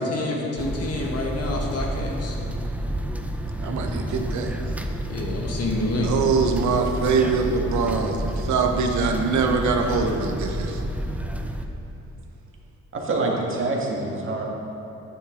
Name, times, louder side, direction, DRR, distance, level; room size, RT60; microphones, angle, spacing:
voice 1, 0.0-2.4 5.1-6.1, left 2 dB, 55° left, 0 dB, 1.7 m, -28 dB
sound 1, 0.6-11.7, right 1 dB, 5° right, 0.6 m, -29 dB
voice 2, 3.6-4.5 6.0-10.8, right 4 dB, 70° right, 3 dB, 1.0 m, -23 dB
voice 3, 12.9-14.4, right 2 dB, 45° right, -1 dB, 1.8 m, -26 dB
10.5 x 9.0 x 3.8 m, 2.9 s
cardioid pair, 90°, 30 cm